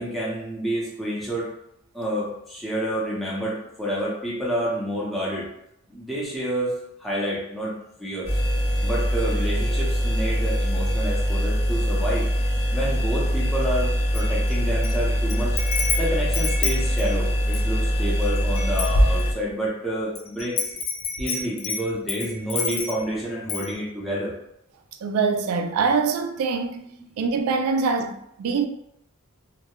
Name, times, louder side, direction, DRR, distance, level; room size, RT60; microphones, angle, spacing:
voice 1, 0.0-1.5 1.9-5.5 5.9-6.7 7.0-8.3 8.8-12.3 12.7-15.6 16.0-20.6 21.2-24.3, equal, ahead, 0.5 m, -29 dB
sound 1, 8.2-19.3, equal, 40° left, 0.8 m, -23 dB
Wind chime, 14.1-14.9 15.3-17.7 18.2-18.3 18.5-19.7 20.1-23.1 23.5-23.7, left 2 dB, 70° left, 0.4 m, -26 dB
voice 2, 25.0-26.9 27.2-28.7, right 5 dB, 80° right, 0.3 m, -24 dB
2.2 x 2.0 x 2.9 m
head